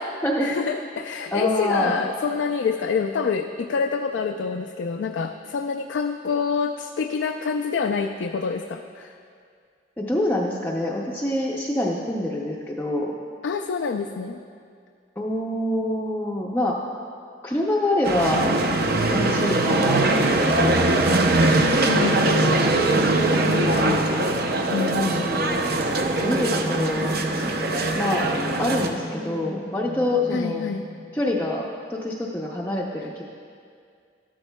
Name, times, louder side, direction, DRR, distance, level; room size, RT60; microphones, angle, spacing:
voice 1, 0.4-9.1 13.4-14.4 21.5-22.6 23.4-24.0 24.7-25.3 30.3-30.8, left 5 dB, 80° left, 4 dB, 0.4 m, -27 dB
voice 2, 1.3-2.0 10.0-13.1 15.2-16.8 17.4-18.5 19.1-20.0 20.4-21.2 23.3-24.1 25.0-27.1 27.9-28.3 28.6-30.6 31.1-33.2, left 1 dB, 10° left, -4 dB, 0.5 m, -26 dB
sound 1, 18.0-28.9, right 2 dB, 55° right, 0.6 m, -21 dB
sound 2, 25.4-31.7, equal, 70° right, 2.2 m, -38 dB
12.5 x 12.5 x 2.2 m, 2.3 s
head